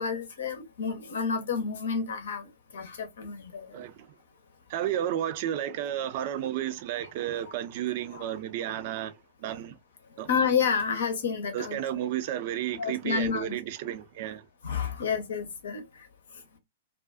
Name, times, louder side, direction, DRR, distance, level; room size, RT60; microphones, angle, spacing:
voice 1, 0.0-3.8 8.1-8.2 10.3-11.8 12.7-13.6 14.6-16.1, left 6 dB, 60° left, 0.8 m, -30 dB
voice 2, 3.7-4.1 4.7-9.1 9.4-9.8 10.2-10.3 11.5-14.5, right 11 dB, 45° right, 0.5 m, -32 dB
2.4 x 2.3 x 2.2 m
figure-of-eight pair, 105°, 0 cm